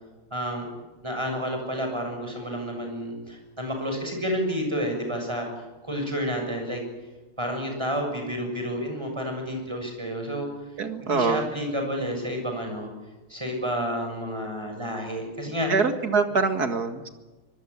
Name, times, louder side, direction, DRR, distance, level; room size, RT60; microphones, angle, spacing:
voice 1, 0.3-0.7 1.0-5.5 5.8-6.8 7.4-10.5 11.0-12.9 13.3-15.7, equal, 10° right, 3 dB, 7.3 m, -30 dB
voice 2, 10.8-11.5 15.7-17.1, right 4 dB, 50° right, 7 dB, 2.3 m, -24 dB
24.5 x 22.5 x 8.5 m, 1.1 s
omnidirectional pair, 2.3 m